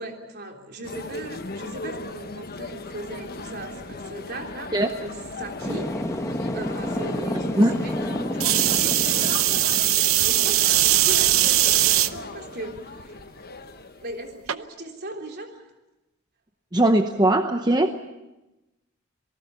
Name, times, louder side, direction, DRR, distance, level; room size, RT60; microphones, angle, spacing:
voice 1, 0.0-4.7 5.0-5.9 6.5-9.3 10.2-13.1 14.0-15.6, right 1 dB, 50° right, 3 dB, 3.5 m, -38 dB
sound 1, 0.8-14.3, left 3 dB, 45° left, 1.2 m, -37 dB
sound 2, 5.6-9.8, left 1 dB, 15° left, 1.3 m, -30 dB
sound 3, 8.4-12.1 12.8-13.2 14.5-14.6, right 14 dB, 80° right, 0.8 m, -20 dB
voice 2, 16.7-18.1, right 1 dB, 20° right, 6 dB, 0.9 m, -20 dB
28.0 x 18.5 x 7.0 m, 1.0 s
head